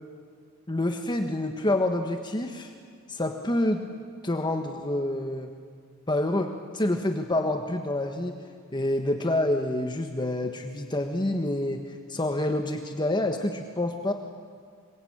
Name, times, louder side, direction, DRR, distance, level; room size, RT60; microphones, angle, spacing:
voice 1, 0.7-2.7 3.1-3.9 4.2-5.5 6.1-8.4 8.7-14.1, left 1 dB, 20° left, 5 dB, 1.4 m, -27 dB
26.5 x 23.5 x 8.8 m, 2.1 s
head